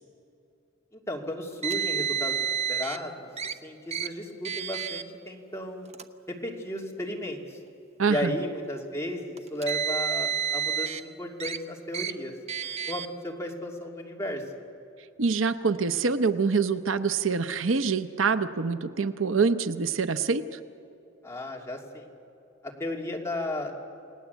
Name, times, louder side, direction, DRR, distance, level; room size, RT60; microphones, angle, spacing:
voice 1, 0.9-3.3 3.6-5.9 6.3-7.6 8.1-12.3 12.9-14.4 21.2-22.1 22.6-23.8, left 1 dB, 15° left, -1 dB, 2.9 m, -34 dB
Car, 1.6-3.0 3.4-3.5 3.9-4.1 4.5-5.0 5.9-6.0 7.0-7.1 9.4-11.0 11.4-11.6 11.9-12.1 12.5-13.1, right 8 dB, 35° right, 0.8 m, -30 dB
voice 2, 8.0-8.3 15.2-20.6, right 4 dB, 70° right, 11 dB, 0.8 m, -25 dB
29.0 x 18.5 x 8.2 m, 2.9 s
head